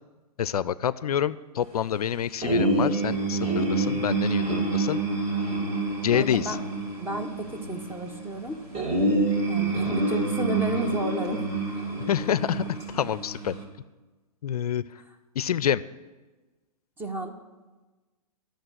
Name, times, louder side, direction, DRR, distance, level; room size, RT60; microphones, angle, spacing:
voice 1, 0.4-5.0 6.0-6.6 12.1-13.6 14.4-14.8 15.4-15.8, left 9 dB, 70° left, 17 dB, 0.4 m, -27 dB
sound 1, 2.4-13.6, right 2 dB, 30° right, 2.1 m, -27 dB
voice 2, 6.1-6.6 7.0-8.6 9.5-11.4 17.0-17.3, right 1 dB, 10° right, 5 dB, 1.0 m, -32 dB
11.0 x 6.4 x 7.8 m, 1.2 s
hypercardioid pair, 120°, 20 cm